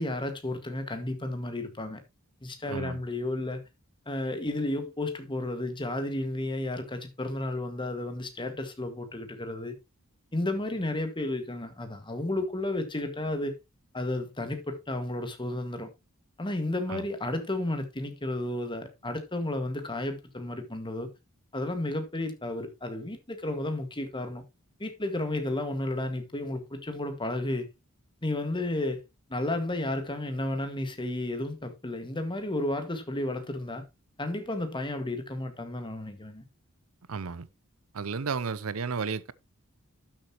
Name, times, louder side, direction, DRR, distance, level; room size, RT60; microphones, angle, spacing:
voice 1, 0.0-2.0 2.4-3.6 4.1-9.8 10.3-13.5 13.9-15.9 16.4-21.1 21.5-24.4 24.8-27.7 28.2-29.0 29.3-33.8 34.2-36.4, left 1 dB, 20° left, 1.9 m, -32 dB
voice 2, 2.7-3.0 16.9-17.0 37.1-37.5 37.9-39.3, right 5 dB, 75° right, 0.7 m, -33 dB
12.0 x 7.3 x 3.0 m
head